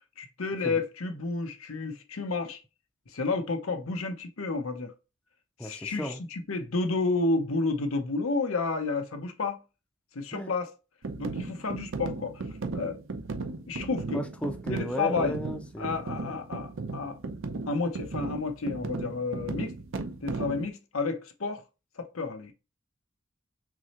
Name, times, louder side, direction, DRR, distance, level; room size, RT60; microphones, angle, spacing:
voice 1, 0.2-2.6 3.1-4.9 5.6-9.6 10.1-10.7 11.2-12.4 12.7-13.0 13.7-14.2 14.7-15.4 15.8-17.2 17.7-19.7 20.2-21.6 22.0-22.5, left 3 dB, 85° left, 0.8 m, -31 dB
voice 2, 5.6-6.2 10.3-10.5 14.1-16.0, equal, 5° left, 0.5 m, -35 dB
sound 1, 11.0-20.7, right 3 dB, 65° right, 0.6 m, -36 dB
6.0 x 2.1 x 2.8 m
head